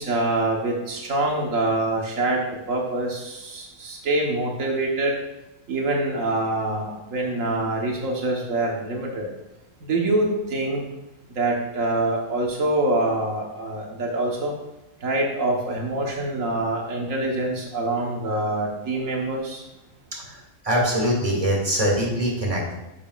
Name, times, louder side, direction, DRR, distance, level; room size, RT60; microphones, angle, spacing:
voice 1, 0.0-5.2 5.7-9.3 9.8-10.8 11.3-14.5 15.0-19.6, right 2 dB, 85° right, 0 dB, 1.6 m, -25 dB
voice 2, 20.3-22.7, equal, 25° right, -2 dB, 2.2 m, -23 dB
10.5 x 7.0 x 2.4 m, 0.98 s
omnidirectional pair, 1.3 m